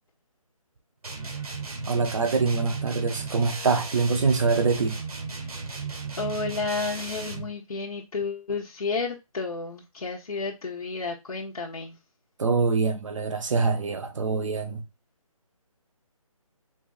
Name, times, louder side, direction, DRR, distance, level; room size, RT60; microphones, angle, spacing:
sound 1, 1.0-7.5, right 4 dB, 85° right, 2.1 m, -35 dB
voice 1, 1.9-5.0 12.4-14.8, right 4 dB, 60° right, 1.0 m, -24 dB
voice 2, 6.2-12.0, left 4 dB, 75° left, 1.4 m, -31 dB
4.7 x 3.6 x 2.6 m
figure-of-eight pair, 165°, 18 cm